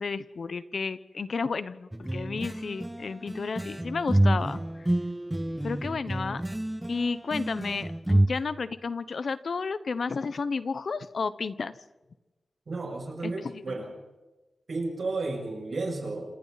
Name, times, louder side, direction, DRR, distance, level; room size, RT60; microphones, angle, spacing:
voice 1, 0.0-4.6 5.6-6.4 6.9-11.7 13.2-13.8, left 4 dB, 70° left, 14 dB, 1.0 m, -32 dB
sound 1, 1.9-8.3, right 1 dB, 10° right, 0.7 m, -28 dB
voice 2, 12.7-14.0 14.7-16.3, right 3 dB, 60° right, 0 dB, 7.3 m, -33 dB
28.0 x 26.5 x 4.1 m, 1.1 s
wide cardioid pair, 95°, 0 cm